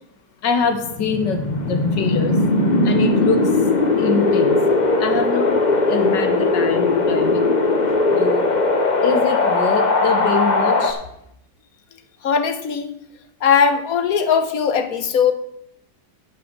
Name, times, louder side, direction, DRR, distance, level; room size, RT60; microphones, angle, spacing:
voice 1, 0.4-2.4 2.8-3.5 4.0-4.6 5.0-5.6 5.9-7.5 8.1-8.5 9.0-11.0, left 5 dB, 90° left, 7 dB, 2.0 m, -24 dB
Wind, 0.7-10.9, left 3 dB, 30° left, 1.0 m, -19 dB
voice 2, 12.2-12.9 13.4-15.3, left 6 dB, 60° left, 10 dB, 1.4 m, -19 dB
11.0 x 6.0 x 6.7 m, 0.75 s
omnidirectional pair, 1.8 m